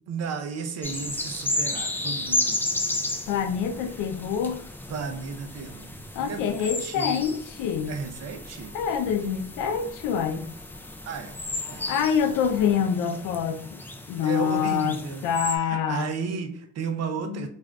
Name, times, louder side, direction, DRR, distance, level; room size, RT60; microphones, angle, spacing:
voice 1, 0.1-2.8 4.9-5.9 6.2-7.4 7.9-8.8 11.1-11.4 11.7-11.9 14.2-17.5, right 5 dB, 55° right, 6 dB, 0.6 m, -34 dB
sound 1, 0.8-15.6, left 2 dB, 5° left, 0.3 m, -33 dB
voice 2, 3.3-4.7 6.1-7.9 8.7-10.5 11.9-13.8 14.1-16.1 17.3-17.5, left 7 dB, 85° left, 7 dB, 0.5 m, -26 dB
3.6 x 2.5 x 2.2 m, 0.67 s
cardioid pair, 100°, 31 cm